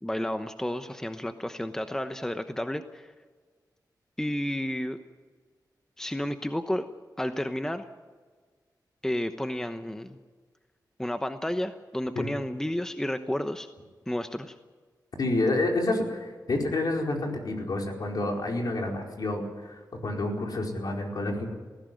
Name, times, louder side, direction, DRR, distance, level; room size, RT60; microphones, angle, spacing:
voice 1, 0.0-3.1 4.2-5.0 6.0-6.9 7.2-7.8 9.0-10.2 11.0-13.7 14.1-14.5, left 1 dB, 5° left, 8 dB, 1.0 m, -31 dB
voice 2, 15.2-21.5, left 2 dB, 65° left, 1 dB, 4.7 m, -29 dB
19.0 x 16.0 x 9.3 m, 1.5 s
wide cardioid pair, 85°, 7 cm